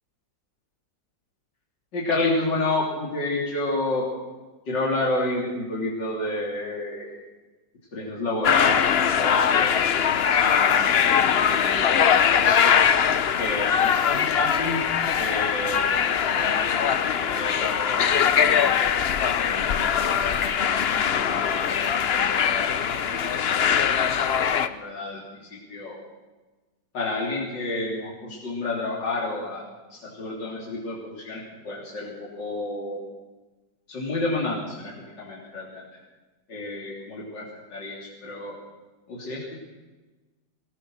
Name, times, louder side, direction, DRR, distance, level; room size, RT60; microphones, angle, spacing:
voice 1, 1.9-4.1 4.7-7.2 7.9-12.7 13.4-14.8 15.2-18.9 19.4-26.0 26.9-29.6 29.9-33.0 33.9-35.8 36.5-38.5 39.1-39.6, left 2 dB, 80° left, -4 dB, 4.0 m, -31 dB
sound 1, 8.4-24.7, left 8 dB, 55° left, 0.7 m, -22 dB
22.5 x 19.0 x 6.4 m, 1.2 s
omnidirectional pair, 1.9 m